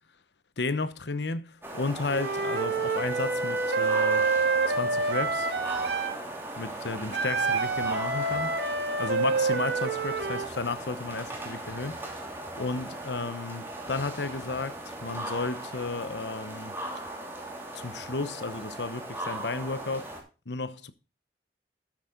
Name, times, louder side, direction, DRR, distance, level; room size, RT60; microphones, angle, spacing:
voice 1, 0.6-4.3 4.7-5.5 6.6-8.5 9.0-12.3 12.6-16.8 17.7-20.1 20.5-20.9, left 3 dB, 80° left, 1.0 m, -33 dB
sound 1, 1.6-20.2, right 1 dB, 15° right, 2.7 m, -39 dB
Wind instrument woodwind instrument, 2.1-6.2 7.1-10.5, right 4 dB, 75° right, 1.8 m, -27 dB
12.5 x 8.3 x 3.8 m
head